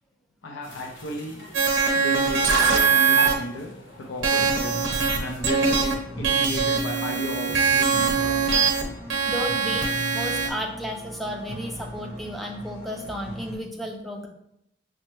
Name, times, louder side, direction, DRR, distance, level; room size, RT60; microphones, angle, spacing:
voice 1, 0.4-1.4 1.9-3.7 4.0-4.8 5.2-8.6, equal, 80° left, 0 dB, 0.6 m, -34 dB
sound 1, 0.6-5.8, equal, 65° left, 0.9 m, -39 dB
sound 2, 1.5-3.3 4.2-5.2 5.4-5.9 6.2-8.8 9.1-10.5, right 5 dB, 80° right, 0.7 m, -22 dB
sound 3, 4.4-13.6, left 1 dB, 35° left, 1.4 m, -38 dB
voice 2, 9.3-14.3, equal, ahead, 1 dB, 0.4 m, -33 dB
6.3 x 2.1 x 3.0 m, 0.78 s
head